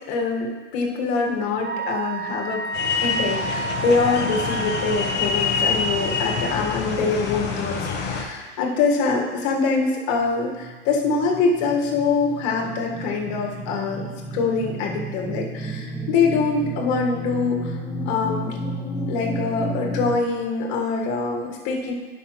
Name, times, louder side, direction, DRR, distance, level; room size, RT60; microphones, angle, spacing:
voice 1, 0.1-2.6 3.0-14.1 14.3-17.7 18.1-18.6 19.1-21.9, left 4 dB, 50° left, 0 dB, 1.8 m, -24 dB
Wind instrument woodwind instrument, 1.6-6.5, right 2 dB, 30° right, 0.8 m, -31 dB
sound 1, 2.7-8.2, left 5 dB, 30° left, 1.1 m, -26 dB
sound 2, 10.3-20.1, right 1 dB, ahead, 1.0 m, -32 dB
11.0 x 5.6 x 3.2 m, 1.4 s
hypercardioid pair, 110°, 35 cm